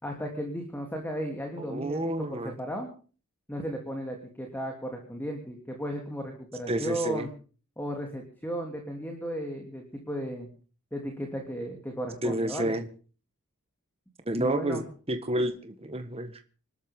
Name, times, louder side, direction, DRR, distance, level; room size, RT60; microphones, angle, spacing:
voice 1, 0.0-2.9 3.5-7.3 7.8-10.5 10.9-12.8 14.3-14.8, equal, 10° left, 2 dB, 3.1 m, -35 dB
voice 2, 1.6-2.5 6.7-7.3 12.2-12.9 14.3-14.8 15.1-16.4, right 1 dB, 25° right, 8 dB, 1.5 m, -29 dB
26.0 x 13.5 x 3.7 m, 0.40 s
head